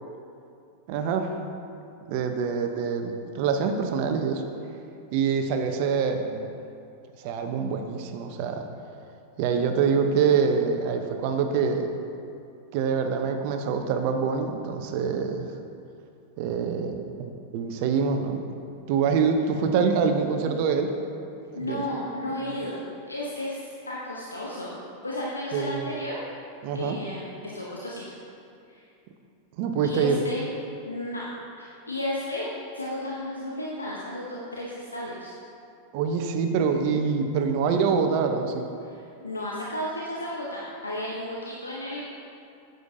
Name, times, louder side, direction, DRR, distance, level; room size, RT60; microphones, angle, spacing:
voice 1, 0.9-1.4 2.1-4.4 5.1-6.5 7.2-8.7 9.4-11.9 12.7-15.5 16.4-17.1 17.5-18.4 18.9-20.9 21.5-21.8 25.5-25.9 26.6-27.0 29.6-30.2 35.9-38.7, right 6 dB, 50° right, 6 dB, 0.7 m, -25 dB
voice 2, 21.5-24.8 25.0-26.2 26.7-28.0 28.7-28.8 29.8-30.5 30.8-32.5 32.7-35.3 38.8-42.1, left 1 dB, 85° left, -5 dB, 0.8 m, -33 dB
9.5 x 7.8 x 2.7 m, 2.5 s
figure-of-eight pair, 90°, 0 cm